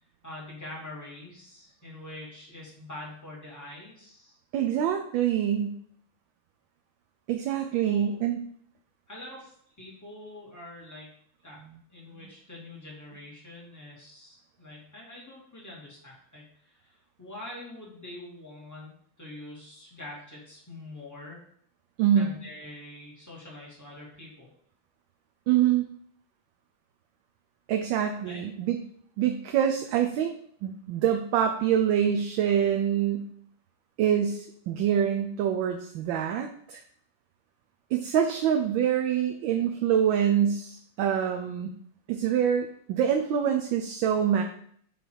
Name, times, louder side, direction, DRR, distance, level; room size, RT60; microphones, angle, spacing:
voice 1, 0.2-4.4 7.8-8.2 9.1-11.1 11.4-11.6 11.9-21.5 22.1-24.5 28.2-28.4, left 1 dB, 10° left, -5 dB, 1.8 m, -45 dB
voice 2, 4.5-5.8 7.3-8.4 22.0-22.3 25.5-25.9 27.7-28.8 29.2-30.4 30.6-33.3 34.0-36.8 37.9-41.7 42.1-44.4, right 9 dB, 75° right, 4 dB, 1.2 m, -25 dB
7.7 x 3.4 x 4.6 m, 0.62 s
omnidirectional pair, 2.3 m